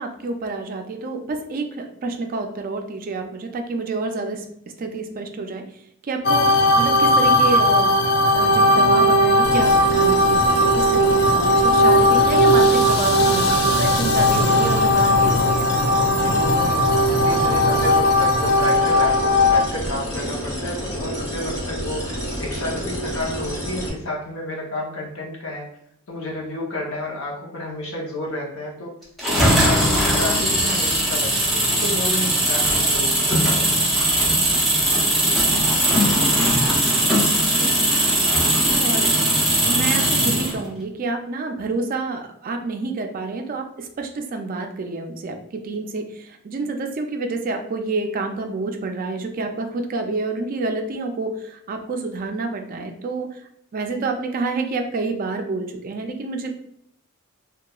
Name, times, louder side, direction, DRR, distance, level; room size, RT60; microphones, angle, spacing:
voice 1, 0.0-4.4 4.8-5.6 6.0-8.0 8.3-15.7 29.6-29.9 36.0-36.5 36.9-37.2 37.5-37.8 38.1-56.5, right 3 dB, 40° right, 5 dB, 0.3 m, -28 dB
sound 1, 6.2-19.6, left 1 dB, 50° left, 0.3 m, -17 dB
sound 2, 9.4-23.9, equal, 30° left, 1.2 m, -29 dB
voice 2, 15.9-25.8 26.1-28.9 29.4-34.0 36.1-36.2, left 1 dB, 70° left, -1 dB, 0.7 m, -31 dB
sound 3, 29.2-40.6, right 1 dB, ahead, 0.7 m, -19 dB
2.9 x 2.2 x 2.3 m, 0.70 s
head